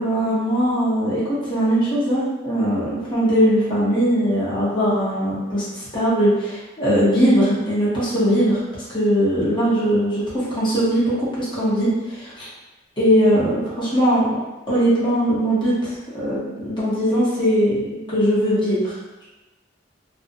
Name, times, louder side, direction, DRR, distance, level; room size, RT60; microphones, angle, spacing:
voice 1, 0.0-8.6 8.9-12.5 13.0-14.3 14.7-18.9, equal, 25° left, -10 dB, 0.8 m, -20 dB
2.5 x 2.1 x 2.5 m, 1.1 s
head